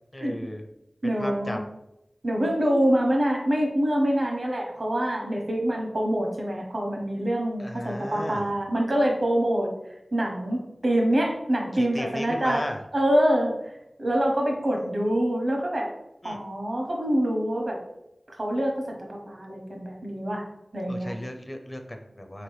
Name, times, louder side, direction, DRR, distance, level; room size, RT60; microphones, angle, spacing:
voice 1, 0.1-0.6 1.0-1.6 7.6-8.5 11.7-12.8 16.2-16.4 20.9-22.4, left 1 dB, 35° left, 4 dB, 0.6 m, -35 dB
voice 2, 1.0-1.6 2.2-9.7 10.1-12.6 12.9-13.5 14.0-15.9 16.2-17.8 18.3-20.5 20.7-21.2, equal, 65° right, 0 dB, 1.0 m, -25 dB
3.9 x 2.9 x 3.2 m, 0.86 s
wide cardioid pair, 45°, 0 cm